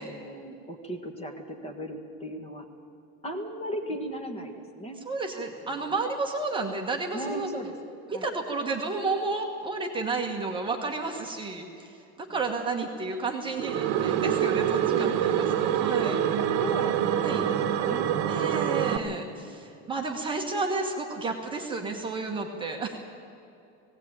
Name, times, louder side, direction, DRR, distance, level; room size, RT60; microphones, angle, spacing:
voice 1, 0.0-2.7 3.2-5.0 5.6-6.0 7.1-7.8 8.1-8.3 14.8-15.3 16.0-18.1 18.9-19.5, right 1 dB, 20° left, 4 dB, 1.6 m, -37 dB
voice 2, 5.0-7.5 8.1-11.9 12.2-16.2 17.2-17.4 18.3-23.0, right 3 dB, 15° right, 1 dB, 1.3 m, -31 dB
sound 1, 13.6-19.0, right 10 dB, 55° right, 1.2 m, -25 dB
18.0 x 17.5 x 8.8 m, 2.7 s
cardioid pair, 170°, 33 cm